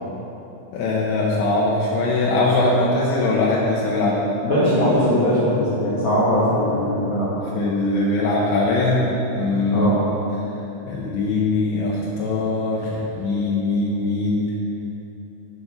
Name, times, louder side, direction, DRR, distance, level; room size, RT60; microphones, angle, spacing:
voice 1, 0.7-4.2 7.5-9.9 10.9-14.5, left 2 dB, 85° left, -5 dB, 3.3 m, -21 dB
voice 2, 4.4-7.3 9.7-10.0, equal, 40° left, -10 dB, 1.9 m, -20 dB
9.6 x 7.3 x 6.6 m, 3.0 s
omnidirectional pair, 5.1 m